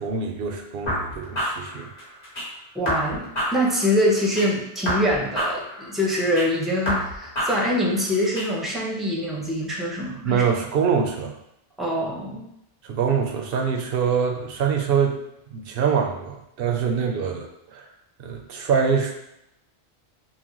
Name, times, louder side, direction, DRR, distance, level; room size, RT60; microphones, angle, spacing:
voice 1, 0.0-1.9 10.2-11.3 12.8-15.2 15.5-17.9 18.2-19.1, right 6 dB, 65° right, 2 dB, 0.8 m, -24 dB
sound 1, 0.9-2.5 2.8-4.5 4.8-6.5 6.8-8.5, equal, 40° left, 1.5 m, -29 dB
voice 2, 2.7-10.4 11.8-12.5, equal, ahead, -3 dB, 0.7 m, -24 dB
5.6 x 2.2 x 3.0 m, 0.81 s
omnidirectional pair, 1.0 m